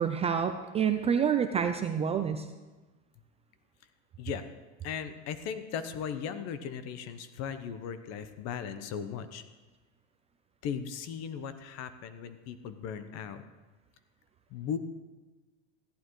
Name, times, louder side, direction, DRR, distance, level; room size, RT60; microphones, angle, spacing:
voice 1, 0.0-2.5, right 7 dB, 20° right, 7 dB, 0.4 m, -28 dB
voice 2, 4.2-4.5 4.8-9.4 10.6-13.4 14.5-14.8, left 7 dB, 45° left, 11 dB, 1.0 m, -37 dB
14.5 x 11.0 x 3.2 m, 1.2 s
supercardioid pair, 125°, 35 cm